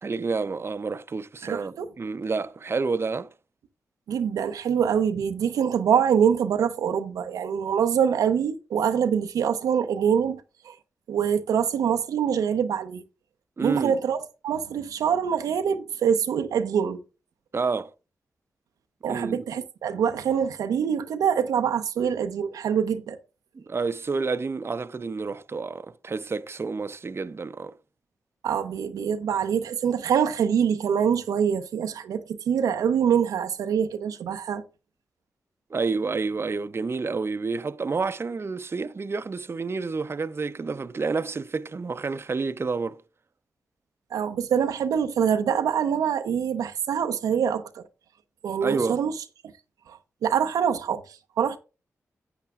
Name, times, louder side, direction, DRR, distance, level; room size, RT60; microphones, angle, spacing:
voice 1, 0.0-3.3 13.6-14.0 17.5-17.9 19.1-19.4 23.6-27.7 35.7-43.0 48.6-49.0, right 4 dB, 45° right, 0.5 m, -29 dB
voice 2, 1.4-1.9 4.1-10.7 11.1-13.0 13.6-17.0 19.0-23.2 28.4-34.6 44.1-47.8 48.4-49.1 49.9-51.0 51.4-51.6, right 8 dB, 90° right, 0.6 m, -25 dB
13.0 x 8.0 x 2.4 m
supercardioid pair, 40°, 6 cm